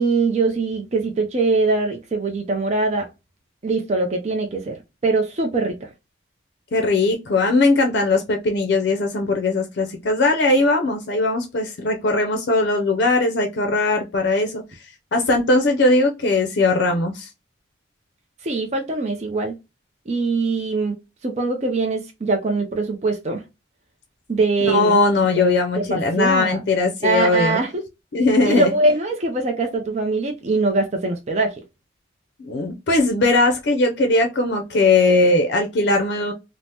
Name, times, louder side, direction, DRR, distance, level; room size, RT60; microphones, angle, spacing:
voice 1, 0.0-3.1 3.6-4.7 5.0-5.8 18.4-19.5 20.1-21.0 21.2-23.4 24.3-25.0 25.8-26.6 27.0-27.7 28.4-31.5, right 3 dB, 35° right, 0.4 m, -22 dB
voice 2, 6.7-14.6 15.1-17.3 24.7-27.6 28.1-28.7 32.4-36.3, left 2 dB, 60° left, 0.5 m, -19 dB
2.7 x 2.0 x 3.3 m
head